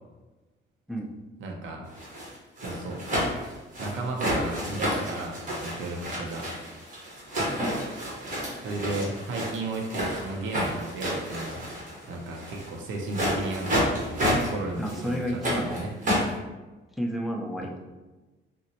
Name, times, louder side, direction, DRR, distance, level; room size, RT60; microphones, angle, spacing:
voice 1, 1.4-1.9 2.6-3.0 3.8-6.5 8.6-11.7 12.1-15.9 17.6-17.7, right 2 dB, 75° right, 1 dB, 0.6 m, -34 dB
sound 1, 1.9-12.7 13.0-14.5 14.8-16.3, equal, 40° right, 1.3 m, -30 dB
voice 2, 14.8-15.8 16.9-17.8, equal, ahead, 0 dB, 0.4 m, -31 dB
3.7 x 2.2 x 2.8 m, 1.2 s
cardioid pair, 90°, 20 cm